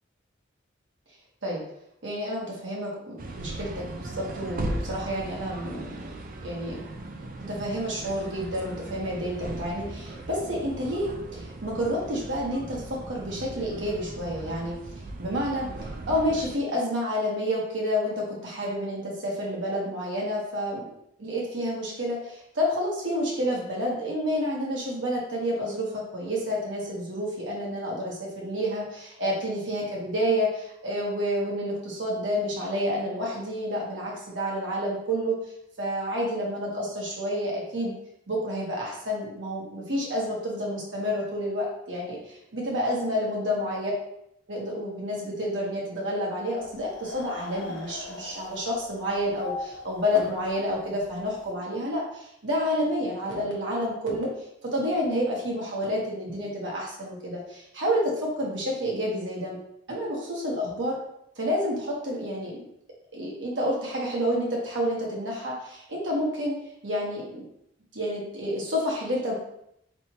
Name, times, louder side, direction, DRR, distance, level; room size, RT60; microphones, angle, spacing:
voice 1, 2.0-6.0 6.4-6.8 7.5-14.7 15.2-15.7 16.0-20.8 21.2-35.4 35.8-37.9 38.3-43.9 44.5-54.3 54.6-59.6 59.9-61.0 61.4-62.7 63.1-66.5 66.8-67.5 67.9-69.3, equal, 80° right, -4 dB, 1.3 m, -29 dB
sound 1, 3.2-16.6, right 2 dB, 50° right, 0.5 m, -38 dB
sound 2, 46.6-51.5, left 3 dB, 75° left, 0.7 m, -41 dB
4.2 x 3.4 x 2.9 m, 0.76 s
head